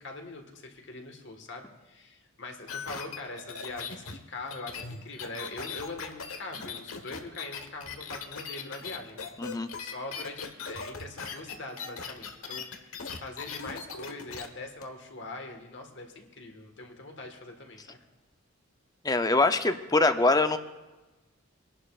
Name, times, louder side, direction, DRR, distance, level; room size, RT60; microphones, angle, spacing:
voice 1, 0.0-18.0, left 2 dB, 55° left, 3 dB, 1.6 m, -42 dB
sound 1, 2.7-14.5 14.8-14.9, left 5 dB, 85° left, 1.3 m, -39 dB
voice 2, 19.0-20.6, left 2 dB, 20° left, 9 dB, 0.6 m, -23 dB
27.0 x 11.5 x 2.4 m, 1.1 s
head